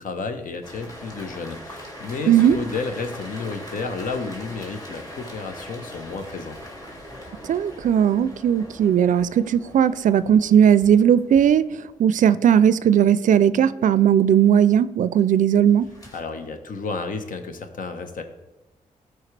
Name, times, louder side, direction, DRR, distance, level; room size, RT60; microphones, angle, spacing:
voice 1, 0.0-6.6 16.1-18.2, left 4 dB, 70° left, 1.0 m, -32 dB
sound 1, 0.6-12.2 15.7-16.2, equal, 25° left, 2.5 m, -41 dB
voice 2, 2.3-2.6 7.5-11.7 12.0-15.9, right 9 dB, 65° right, 0.4 m, -17 dB
13.5 x 4.8 x 3.3 m
cardioid pair, 55°, 14 cm